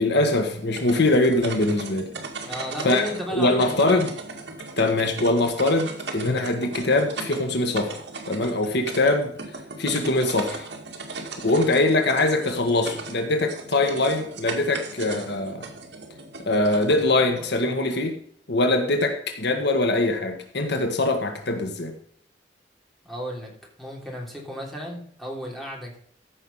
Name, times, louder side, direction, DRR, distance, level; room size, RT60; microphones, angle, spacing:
voice 1, 0.0-2.1 2.8-3.0 3.3-4.1 4.8-9.3 9.8-10.7 11.4-15.7 16.4-18.2 18.5-21.9, left 2 dB, 65° left, 5 dB, 1.5 m, -22 dB
sound 1, 0.6-17.6, right 3 dB, 70° right, 2.2 m, -37 dB
voice 2, 2.4-4.0 23.0-23.5 23.8-26.0, equal, ahead, -2 dB, 3.3 m, -34 dB
14.5 x 5.9 x 5.6 m, 0.63 s
head